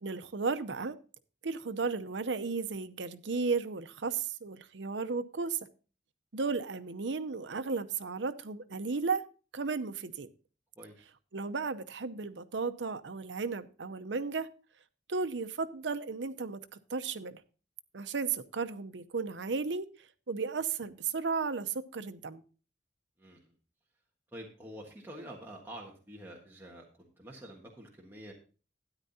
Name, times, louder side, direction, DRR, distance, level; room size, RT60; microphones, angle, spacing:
voice 1, 0.0-1.0 1.4-5.6 6.3-9.2 9.5-10.3 11.3-14.5 15.1-16.6 16.9-17.4 17.9-19.9 20.3-22.4, right 4 dB, 90° right, 0.7 m, -34 dB
voice 2, 10.8-11.1 23.2-23.5 24.3-28.3, right 1 dB, 10° right, 1.5 m, -47 dB
12.5 x 9.8 x 2.8 m
head